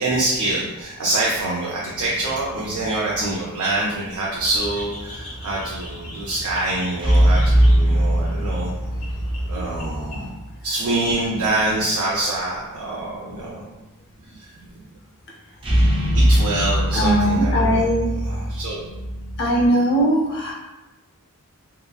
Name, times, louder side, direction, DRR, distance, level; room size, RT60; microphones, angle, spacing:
voice 1, 0.0-8.7 9.5-13.6 14.3-14.5 16.1-17.8 18.3-18.8, right 2 dB, 80° right, -5 dB, 0.5 m, -25 dB
sound 1, 1.9-2.9 7.0-10.6 15.6-19.7, equal, 25° right, 0.3 m, -21 dB
sound 2, 4.4-10.3, equal, 75° left, 0.9 m, -37 dB
voice 2, 7.4-7.9 9.5-10.1 14.3-14.4 14.8-14.9 16.9-18.2 19.4-20.5, equal, 50° left, -3 dB, 0.6 m, -22 dB
3.0 x 2.3 x 2.2 m, 1.0 s
head